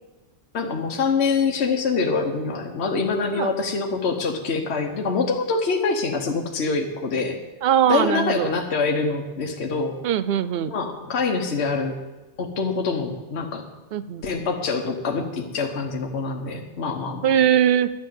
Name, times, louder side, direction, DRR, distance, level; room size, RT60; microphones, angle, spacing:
voice 1, 0.5-7.4 7.9-10.0 10.7-12.0 12.4-13.6 14.2-17.3, left 4 dB, 65° left, 2 dB, 1.3 m, -25 dB
voice 2, 7.6-8.5 10.0-10.7 13.9-14.2 17.2-17.9, right 9 dB, 60° right, 14 dB, 0.7 m, -20 dB
10.5 x 8.7 x 7.5 m, 1.2 s
omnidirectional pair, 1.2 m